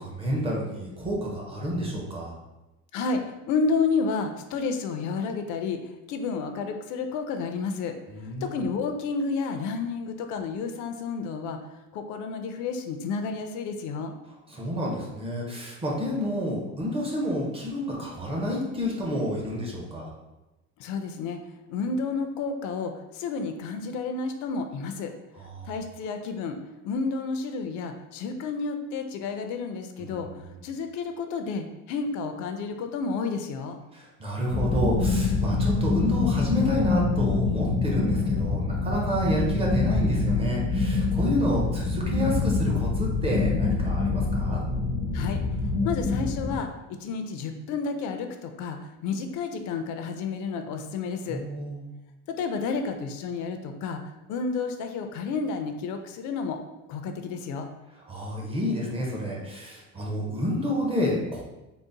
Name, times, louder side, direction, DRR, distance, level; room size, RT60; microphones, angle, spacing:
voice 1, 0.0-2.3 8.1-8.6 14.5-20.1 25.4-25.7 30.0-30.3 33.9-44.6 51.3-51.9 58.1-61.4, equal, 15° right, -3 dB, 0.6 m, -29 dB
voice 2, 2.9-5.8 6.1-7.9 8.4-11.6 11.9-14.1 20.8-21.4 21.7-25.1 25.6-26.6 26.8-30.3 30.6-33.8 45.1-45.4 45.8-51.4 52.3-54.0 54.3-56.6 56.9-57.7, left 4 dB, 60° left, 6 dB, 0.5 m, -30 dB
sound 1, 34.5-46.6, left 3 dB, 80° right, 1.4 m, -25 dB
3.8 x 2.1 x 3.8 m, 1.0 s
cardioid pair, 165°, 34 cm